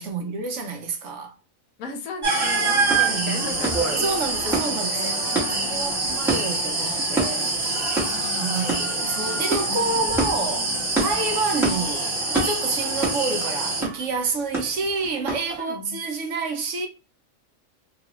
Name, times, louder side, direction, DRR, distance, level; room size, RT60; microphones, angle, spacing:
voice 1, 0.0-1.4 3.0-3.6 3.9-7.5 8.3-16.9, right 4 dB, 65° right, 0.9 m, -29 dB
voice 2, 1.8-6.2 8.0-8.6 9.7-10.9 15.6-16.0, left 6 dB, 85° left, 1.1 m, -37 dB
sound 1, 2.2-13.8, right 3 dB, 45° right, 1.0 m, -26 dB
sound 2, 2.9-15.6, right 2 dB, ahead, 0.9 m, -30 dB
2.8 x 2.3 x 2.9 m
omnidirectional pair, 1.4 m